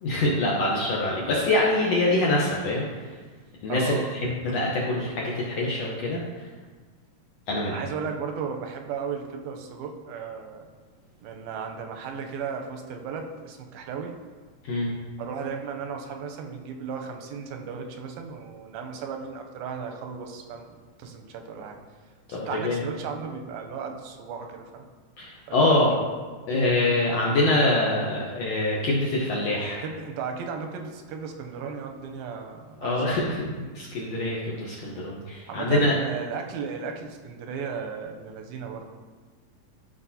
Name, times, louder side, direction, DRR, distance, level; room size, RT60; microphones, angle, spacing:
voice 1, 0.0-3.1 3.6-6.2 7.5-7.8 14.6-14.9 22.3-22.8 25.2-25.9 26.5-29.8 32.8-33.5 33.8-36.0, left 2 dB, 70° left, -4 dB, 1.6 m, -24 dB
voice 2, 3.7-4.1 7.7-10.7 11.2-14.2 15.2-21.8 22.3-24.9 25.5-26.0 29.8-33.2 35.5-38.9, right 6 dB, 90° right, 4 dB, 2.6 m, -35 dB
13.5 x 5.2 x 2.8 m, 1.4 s
omnidirectional pair, 4.1 m